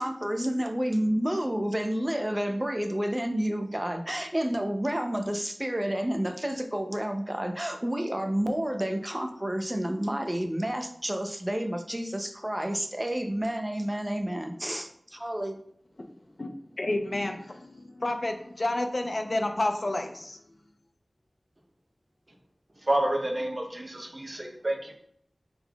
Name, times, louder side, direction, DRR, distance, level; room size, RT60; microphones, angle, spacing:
voice 1, 0.0-15.6, right 1 dB, 20° right, 5 dB, 0.6 m, -30 dB
voice 2, 16.8-20.4, left 2 dB, 60° left, 5 dB, 0.6 m, -30 dB
voice 3, 22.9-24.9, right 1 dB, 45° right, 2 dB, 0.9 m, -29 dB
5.7 x 3.8 x 2.3 m, 0.68 s
wide cardioid pair, 50°, 0 cm